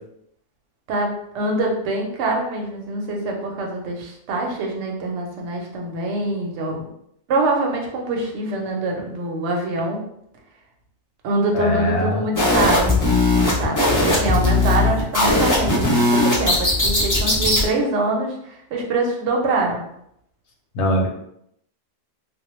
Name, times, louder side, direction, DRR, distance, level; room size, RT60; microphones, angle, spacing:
voice 1, 0.9-6.9 7.3-10.0 11.2-12.9 13.3-19.8, right 2 dB, 65° right, 0 dB, 0.8 m, -24 dB
voice 2, 11.5-12.2 20.7-21.1, equal, 65° left, 1 dB, 0.8 m, -21 dB
sound 1, 12.4-17.7, left 2 dB, 30° left, 0.3 m, -18 dB
2.2 x 2.1 x 3.0 m, 0.74 s
omnidirectional pair, 1.4 m